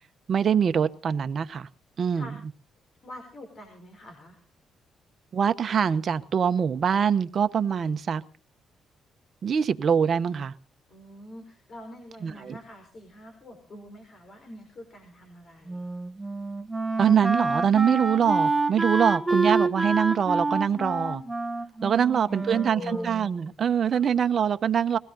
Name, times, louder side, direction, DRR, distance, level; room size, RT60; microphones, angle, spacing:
voice 1, 0.3-1.7 2.0-2.3 5.3-8.2 9.4-10.5 12.2-12.6 17.0-21.2 21.8-25.0, right 7 dB, 50° right, 11 dB, 1.0 m, -24 dB
voice 2, 3.0-4.4 10.9-15.8 22.0-23.1 23.9-24.2, left 1 dB, 45° left, 3 dB, 4.8 m, -44 dB
Wind instrument woodwind instrument, 15.7-23.5, right 3 dB, 10° right, 1.4 m, -28 dB
21.5 x 16.0 x 3.9 m, 0.39 s
cardioid pair, 90°, 0 cm